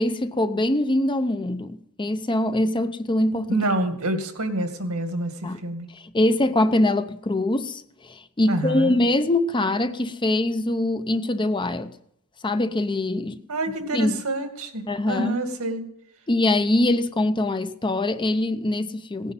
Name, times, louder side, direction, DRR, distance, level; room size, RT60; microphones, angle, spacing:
voice 1, 0.0-3.6 5.4-5.6 5.9-11.9 12.4-13.4 13.9-14.2 14.9-15.4 16.3-19.3, left 1 dB, 20° left, 0.7 m, -23 dB
voice 2, 3.5-5.9 8.5-9.0 13.5-15.8, right 1 dB, 80° right, 2.2 m, -27 dB
17.5 x 9.9 x 5.6 m
head